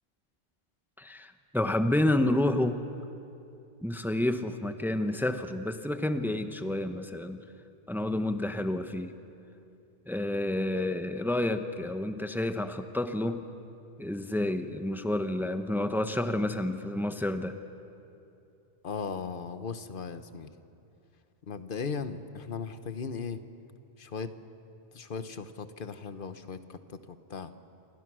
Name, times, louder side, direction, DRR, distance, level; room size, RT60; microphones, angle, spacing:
voice 1, 1.0-2.8 3.8-7.4 7.9-9.1 10.1-13.5 14.0-17.5, left 1 dB, ahead, 8 dB, 0.9 m, -29 dB
voice 2, 18.8-20.5 21.5-23.4 24.0-24.3 24.9-27.5, left 5 dB, 55° left, 11 dB, 1.2 m, -37 dB
28.5 x 25.0 x 6.2 m, 2.7 s
omnidirectional pair, 1.1 m